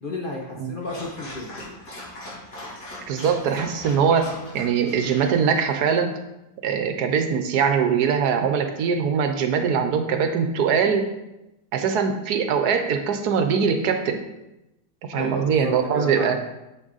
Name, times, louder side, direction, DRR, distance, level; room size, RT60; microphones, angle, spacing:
voice 1, 0.0-1.5 15.1-16.4, left 2 dB, 40° left, -1 dB, 0.8 m, -32 dB
Dog, 0.8-5.8, left 1 dB, 55° left, 3.0 m, -40 dB
voice 2, 3.1-6.1 6.6-11.1 11.7-14.2 15.1-16.4, right 6 dB, 75° right, 7 dB, 1.3 m, -22 dB
7.4 x 6.2 x 4.0 m, 0.93 s
omnidirectional pair, 1.8 m